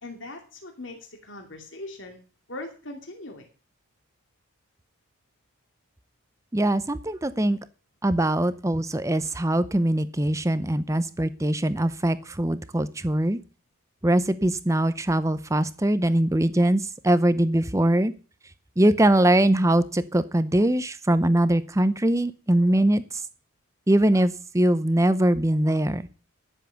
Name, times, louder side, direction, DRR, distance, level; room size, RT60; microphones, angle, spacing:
voice 1, 0.0-2.2 2.5-3.5, left 2 dB, 60° left, 3 dB, 2.5 m, -40 dB
voice 2, 6.5-7.6 8.0-13.4 14.0-18.1 18.8-23.0 23.9-26.1, right 1 dB, 15° right, 14 dB, 0.6 m, -22 dB
11.5 x 7.4 x 7.0 m, 0.36 s
head